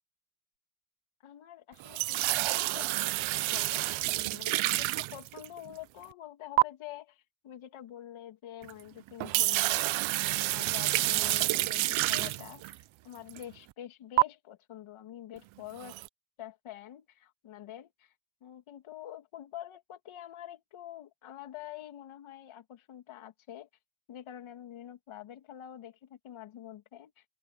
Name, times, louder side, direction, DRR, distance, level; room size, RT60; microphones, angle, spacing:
voice 1, 1.2-16.0 16.4-18.1 18.4-23.7 24.1-27.2, left 12 dB, 75° left, 2.8 m, -47 dB
sound 1, 1.8-5.7 6.6-6.7 8.6-8.7 9.1-12.7 13.3-13.4 14.2-14.3 15.8-16.1, right 18 dB, 70° right, 0.6 m, -28 dB
open air
cardioid pair, 130°, 50 cm